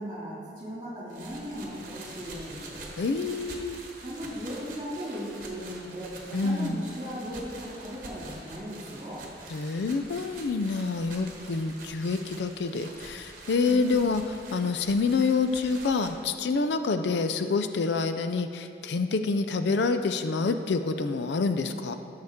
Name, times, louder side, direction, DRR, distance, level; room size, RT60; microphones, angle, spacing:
voice 1, 0.0-2.8 4.0-9.2 13.7-14.0, equal, 25° right, -6 dB, 2.4 m, -37 dB
sound 1, 1.1-16.1, right 2 dB, 45° right, 1.2 m, -46 dB
voice 2, 3.0-3.8 6.3-6.8 9.5-21.9, left 4 dB, 75° left, 9 dB, 0.4 m, -27 dB
12.0 x 6.5 x 3.6 m, 2.4 s
head